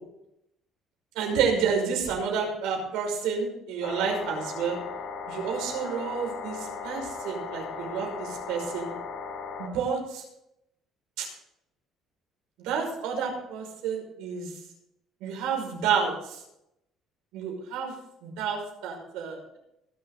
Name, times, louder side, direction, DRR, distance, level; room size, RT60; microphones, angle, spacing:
voice 1, 1.2-4.8 5.3-8.9 9.6-10.2 11.2-11.3 12.6-14.5 15.2-16.1 17.3-17.9 18.2-19.6, right 6 dB, 90° right, 1 dB, 5.6 m, -30 dB
sound 1, 3.8-9.7, left 4 dB, 60° left, 3.1 m, -37 dB
23.0 x 7.9 x 4.0 m, 0.81 s
cardioid pair, 140°, 0 cm